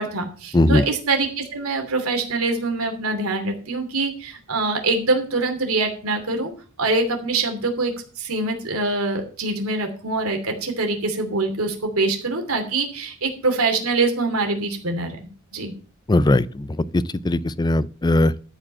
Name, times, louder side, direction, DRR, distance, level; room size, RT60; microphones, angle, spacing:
voice 1, 0.0-6.5 6.8-15.2 15.5-15.7, right 3 dB, 85° right, 2.8 m, -24 dB
voice 2, 0.5-0.8 16.1-18.4, left 1 dB, 20° left, 0.4 m, -19 dB
13.0 x 5.2 x 7.4 m
head